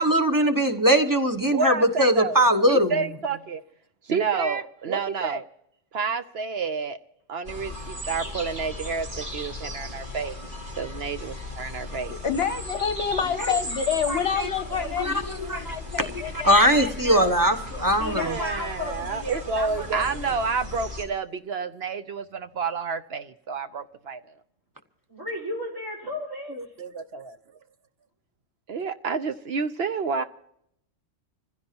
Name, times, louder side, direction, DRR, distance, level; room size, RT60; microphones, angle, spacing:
voice 1, 0.0-3.0 14.1-14.5 15.0-15.6 16.0-18.3, equal, 15° right, 6 dB, 1.1 m, -21 dB
voice 2, 1.5-2.4 2.7-3.6 4.1-5.5 5.9-7.0 7.3-10.4 10.8-12.1 18.2-24.2 26.8-27.4 28.7-30.2, right 5 dB, 60° right, 10 dB, 0.9 m, -29 dB
sound 1, 7.5-21.0, left 1 dB, 40° right, 2.8 m, -37 dB
voice 3, 11.9-17.3, left 7 dB, 60° left, 10 dB, 1.0 m, -29 dB
voice 4, 18.0-20.3 25.1-26.5, left 1 dB, 80° right, -2 dB, 5.5 m, -34 dB
26.5 x 16.0 x 2.9 m, 0.73 s
omnidirectional pair, 1.3 m